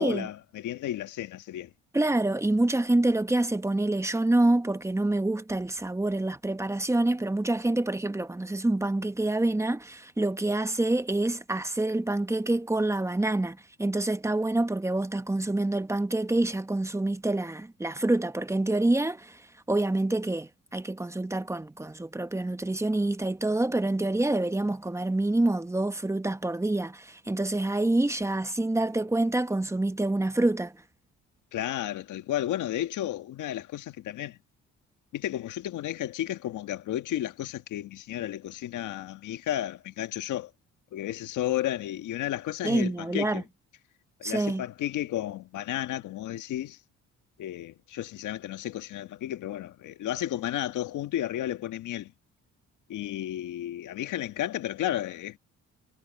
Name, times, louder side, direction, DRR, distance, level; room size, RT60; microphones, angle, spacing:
voice 1, 0.0-1.7 31.5-34.4 35.1-40.5 40.9-43.4 44.2-46.8 47.4-52.1 52.9-55.4, left 12 dB, 80° left, 1.6 m, -33 dB
voice 2, 1.9-19.4 19.7-30.8 42.6-43.4 44.2-44.6, right 2 dB, 10° right, 1.1 m, -27 dB
cardioid pair, 90°, 30 cm